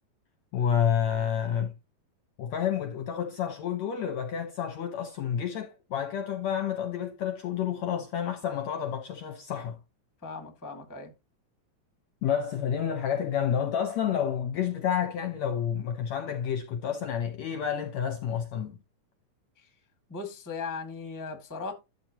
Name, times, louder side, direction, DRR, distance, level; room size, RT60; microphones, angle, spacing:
voice 1, 0.5-1.7 2.4-9.8 12.2-18.8, left 8 dB, 70° left, 1.7 m, -29 dB
voice 2, 10.2-11.1 19.6-19.7 20.1-21.7, left 4 dB, 10° left, 1.0 m, -38 dB
12.5 x 7.5 x 3.0 m
omnidirectional pair, 4.0 m